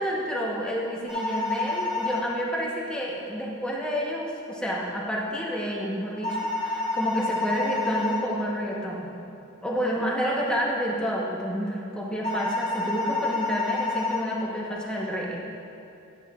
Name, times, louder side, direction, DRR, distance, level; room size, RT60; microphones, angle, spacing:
voice 1, 0.0-9.1 9.6-15.4, equal, 5° left, -4 dB, 1.1 m, -29 dB
sound 1, 1.1-2.2 6.2-8.2 12.2-14.2, left 3 dB, 35° left, 1.1 m, -28 dB
11.5 x 9.9 x 2.5 m, 2.7 s
head